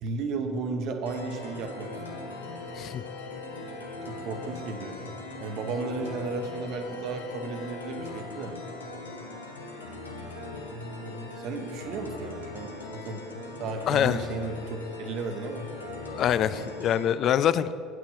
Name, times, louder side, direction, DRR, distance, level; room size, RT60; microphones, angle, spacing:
voice 1, 0.0-1.9 3.6-5.1 5.4-8.5 10.7-15.7, right 3 dB, 55° right, 6 dB, 0.9 m, -34 dB
sound 1, 1.1-17.1, left 2 dB, 85° left, 0.9 m, -40 dB
voice 2, 13.9-14.2 16.1-17.7, left 10 dB, 50° left, 15 dB, 0.3 m, -25 dB
8.8 x 6.2 x 5.6 m, 2.6 s
figure-of-eight pair, 60°, 0 cm